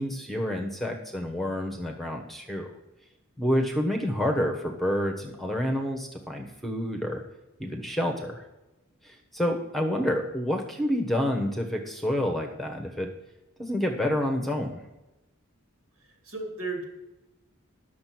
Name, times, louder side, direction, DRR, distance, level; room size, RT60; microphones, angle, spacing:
voice 1, 0.0-2.7 3.4-7.2 7.6-8.4 9.0-13.1 13.6-14.8, equal, ahead, 3 dB, 1.1 m, -28 dB
voice 2, 16.0-16.8, right 3 dB, 70° right, 3 dB, 2.7 m, -35 dB
11.0 x 6.6 x 6.0 m, 0.97 s
head